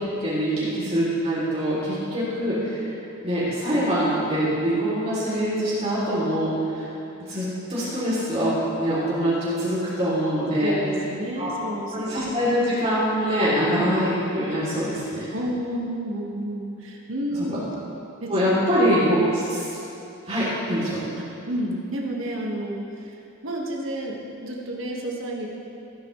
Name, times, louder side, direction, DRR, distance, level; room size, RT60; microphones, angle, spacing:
voice 1, 0.0-2.9 3.2-6.8 7.3-10.7 11.4-15.3 17.4-17.5 18.3-19.8 20.3-21.0, equal, 30° right, -10 dB, 3.0 m, -24 dB
voice 2, 10.6-12.1 15.3-17.6 18.2-18.5 21.2-23.2 23.4-25.5, right 1 dB, 65° right, -2 dB, 1.7 m, -30 dB
16.0 x 9.6 x 3.2 m, 2.8 s
head